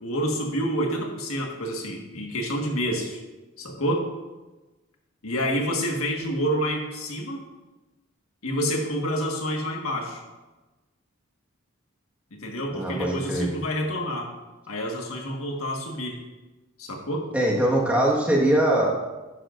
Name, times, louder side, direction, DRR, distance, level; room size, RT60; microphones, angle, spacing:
voice 1, 0.0-3.2 3.6-4.1 5.2-7.5 8.4-10.2 12.3-14.3 14.7-16.2 16.8-17.3, equal, 80° left, 1 dB, 1.7 m, -28 dB
voice 2, 12.7-13.5 17.3-18.9, right 1 dB, 5° right, -3 dB, 1.6 m, -22 dB
11.0 x 10.5 x 2.6 m, 1.2 s
head